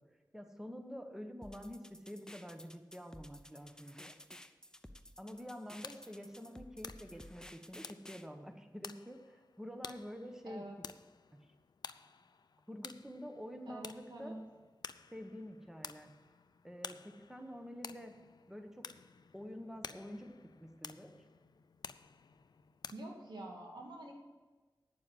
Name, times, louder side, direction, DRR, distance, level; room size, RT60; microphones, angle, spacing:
voice 1, 0.3-4.2 5.2-9.2 9.6-10.6 12.7-14.3 15.1-16.1 16.6-18.1 18.5-18.8 19.3-20.3 20.6-21.1, equal, 5° right, 5 dB, 1.2 m, -47 dB
sound 1, 1.4-8.3, left 1 dB, 10° left, 0.8 m, -54 dB
sound 2, 5.3-22.9, left 5 dB, 70° left, 0.4 m, -52 dB
voice 2, 10.4-10.8 13.7-14.4 22.9-24.1, right 1 dB, 85° right, -1 dB, 2.4 m, -47 dB
9.3 x 7.0 x 7.9 m, 1.3 s
cardioid pair, 50°, 7 cm